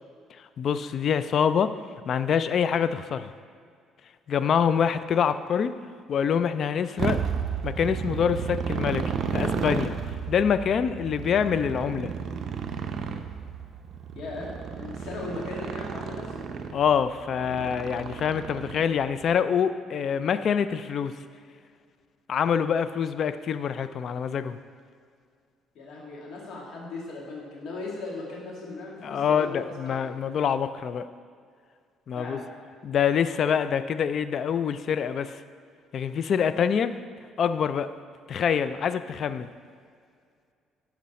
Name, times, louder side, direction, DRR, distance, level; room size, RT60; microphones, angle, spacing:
voice 1, 0.6-1.8 2.1-3.3 4.3-5.8 6.1-7.2 7.6-9.9 10.3-12.1 16.7-21.1 22.3-24.6 29.0-31.1 32.1-32.4 32.8-35.4 35.9-37.0 37.4-37.9 38.3-39.5, left 7 dB, 50° left, 12 dB, 0.4 m, -25 dB
Motorcycle, 7.0-19.1, right 6 dB, 55° right, 0.6 m, -32 dB
voice 2, 14.1-14.5 14.7-16.3 25.7-30.2 32.1-32.4, left 3 dB, 65° left, -3 dB, 2.2 m, -38 dB
11.5 x 5.1 x 4.2 m, 2.1 s
cardioid pair, 110°, 0 cm